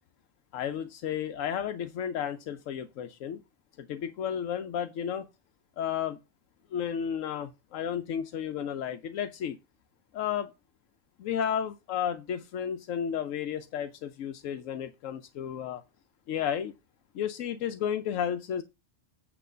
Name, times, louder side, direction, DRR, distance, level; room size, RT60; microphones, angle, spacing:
voice 1, 0.5-3.4 3.8-5.3 5.8-6.2 6.7-9.6 10.1-10.5 11.2-15.8 16.3-16.7 17.1-18.6, left 8 dB, 90° left, 1.1 m, -32 dB
8.7 x 3.1 x 6.5 m
omnidirectional pair, 1.3 m